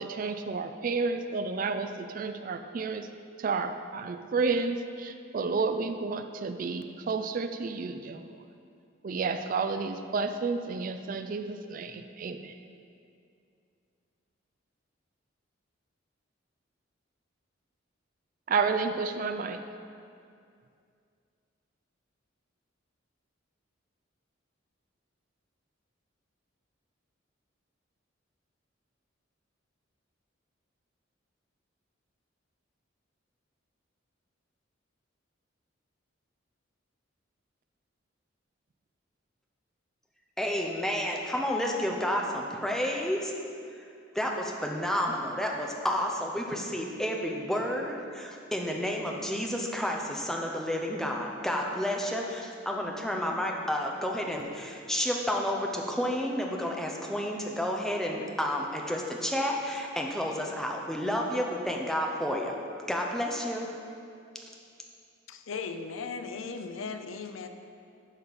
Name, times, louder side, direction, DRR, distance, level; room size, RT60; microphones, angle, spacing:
voice 1, 0.0-3.1 3.4-8.3 9.0-12.5 18.5-19.7, right 4 dB, 45° right, 8 dB, 0.4 m, -31 dB
voice 2, 40.4-43.3 44.1-62.6 62.9-63.7, equal, ahead, 0 dB, 0.7 m, -30 dB
voice 3, 65.3-67.5, left 5 dB, 85° left, 7 dB, 0.5 m, -37 dB
11.0 x 5.3 x 4.1 m, 2.4 s
head